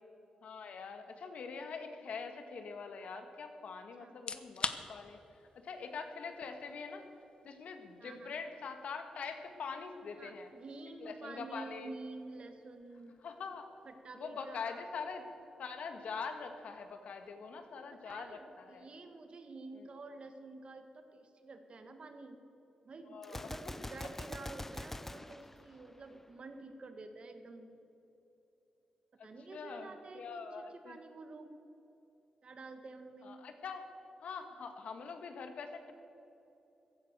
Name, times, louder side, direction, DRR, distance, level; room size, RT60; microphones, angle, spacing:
voice 1, 0.4-5.2 5.6-7.1 7.4-10.5 11.0-11.9 13.2-13.7 14.1-15.2 15.6-18.9 19.8-19.9 23.1-23.5 29.2-31.0 33.2-33.8 34.2-35.9, left 5 dB, 75° left, 6 dB, 1.6 m, -44 dB
sound 1, 4.1-18.9, left 5 dB, 50° left, 0.9 m, -50 dB
voice 2, 8.0-8.4 10.2-13.1 13.8-14.9 17.7-22.4 22.8-27.7 29.2-31.5 32.4-33.4, right 3 dB, 50° right, 7 dB, 1.7 m, -49 dB
Gunshot gunfire, 23.2-26.3, left 1 dB, 15° left, 0.4 m, -45 dB
15.5 x 11.0 x 6.7 m, 3.0 s
cardioid pair, 80°, 2 cm